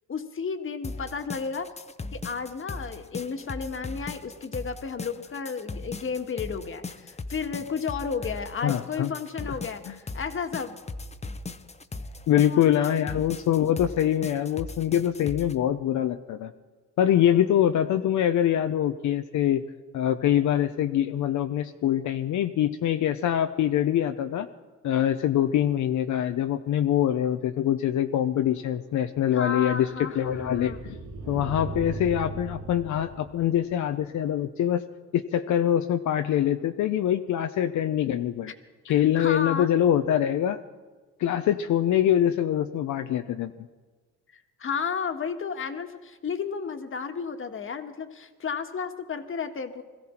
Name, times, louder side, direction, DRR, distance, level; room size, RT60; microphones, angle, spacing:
voice 1, 0.1-1.7 2.1-10.8 12.3-12.7 17.0-17.2 29.3-30.8 38.5-38.6 39.1-39.7 44.3-49.8, left 6 dB, 45° left, 7 dB, 1.6 m, -33 dB
sound 1, 0.8-15.5, left 3 dB, 20° left, 0.9 m, -38 dB
voice 2, 8.6-9.1 9.9-10.0 12.3-16.5 17.0-19.6 19.9-24.5 24.8-31.0 31.3-34.8 35.1-38.5 38.8-40.6 41.2-43.5, left 10 dB, 70° left, 7 dB, 0.8 m, -24 dB
sound 2, 28.4-34.0, right 3 dB, 75° right, 3.0 m, -39 dB
22.0 x 15.0 x 4.4 m, 1.4 s
cardioid pair, 90°, 30 cm